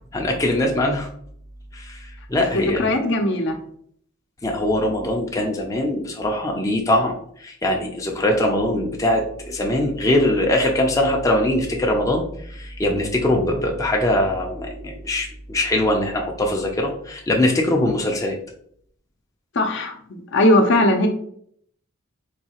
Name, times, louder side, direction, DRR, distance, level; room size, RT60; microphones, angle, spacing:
voice 1, 0.1-1.1 1.7-2.9 4.4-18.4, left 1 dB, 15° left, 0 dB, 0.4 m, -22 dB
voice 2, 2.5-3.6 19.5-21.1, left 1 dB, 60° left, 5 dB, 0.6 m, -19 dB
3.9 x 2.7 x 2.8 m, 0.64 s
head